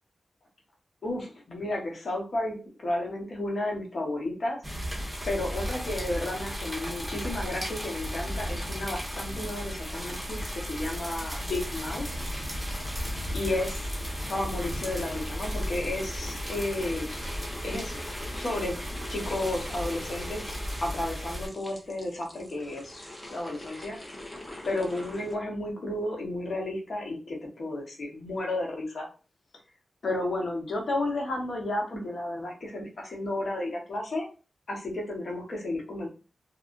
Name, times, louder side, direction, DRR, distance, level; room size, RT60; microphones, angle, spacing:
voice 1, 1.0-4.6 5.3-12.0 13.3-13.8 14.3-17.1 17.6-17.9 18.3-18.7 19.1-20.6 20.8-23.0 23.3-24.0 24.6-29.1 30.0-34.3 34.7-36.1, left 1 dB, 65° left, -1 dB, 1.1 m, -32 dB
sound 1, 4.6-21.5, equal, 5° left, 1.4 m, -35 dB
sound 2, 12.1-25.3, left 1 dB, 25° left, 1.0 m, -44 dB
3.3 x 2.6 x 2.5 m, 0.34 s
cardioid pair, 60°, 0 cm